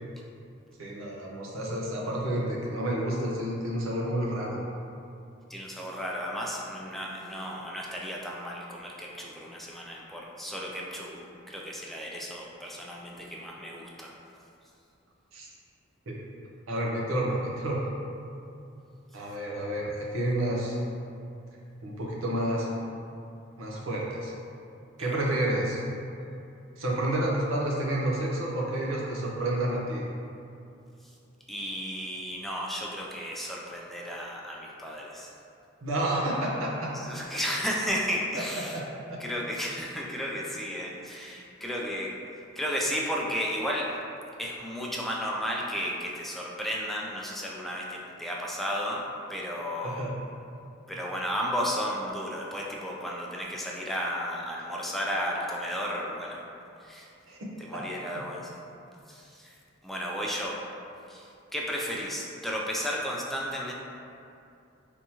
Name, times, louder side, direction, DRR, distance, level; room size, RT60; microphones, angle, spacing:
voice 1, 0.8-4.6 15.3-15.5 16.1-16.2 16.7-17.9 19.1-20.8 21.8-22.7 23.6-24.4 25.0-25.8 26.8-30.0 35.8-36.9 38.6-38.8 39.1-39.2 49.8-50.1 57.3-57.4 57.7-57.8, right 1 dB, 80° right, -3 dB, 0.7 m, -30 dB
voice 2, 5.5-14.1 25.1-25.2 31.5-35.3 36.9-38.8 39.2-42.1 42.6-43.9 44.4-49.0 49.3-50.1 50.9-56.4 56.8-57.1 57.6-58.6 59.1-59.5 59.8-60.6 61.1-63.7, equal, ahead, -3 dB, 0.3 m, -33 dB
3.4 x 2.8 x 2.8 m, 2.6 s
head